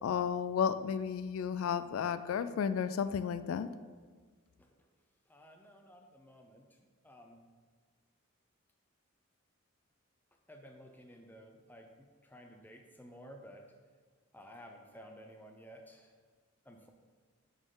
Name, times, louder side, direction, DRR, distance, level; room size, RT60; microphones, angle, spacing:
voice 1, 0.0-3.7, left 7 dB, 75° left, 13 dB, 0.3 m, -33 dB
voice 2, 5.3-6.6 7.0-7.5 10.5-11.9 12.3-13.6 14.3-16.1 16.7-16.9, equal, 10° left, 3 dB, 0.6 m, -54 dB
9.8 x 4.0 x 3.8 m, 1.5 s
head